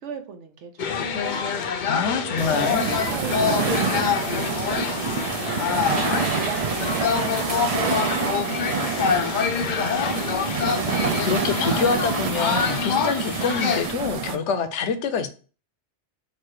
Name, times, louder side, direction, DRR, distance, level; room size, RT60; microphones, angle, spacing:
voice 1, 0.0-10.1, right 6 dB, 90° right, 1.0 m, -38 dB
sound 1, 0.8-13.9, left 7 dB, 55° left, 0.6 m, -26 dB
voice 2, 1.9-2.9 10.8-15.3, left 5 dB, 85° left, 0.9 m, -26 dB
sound 2, 2.4-14.4, right 6 dB, 65° right, 0.3 m, -27 dB
sound 3, 6.0-9.7 11.5-11.6, right 2 dB, 50° right, 1.3 m, -35 dB
4.1 x 2.4 x 4.6 m
omnidirectional pair, 1.2 m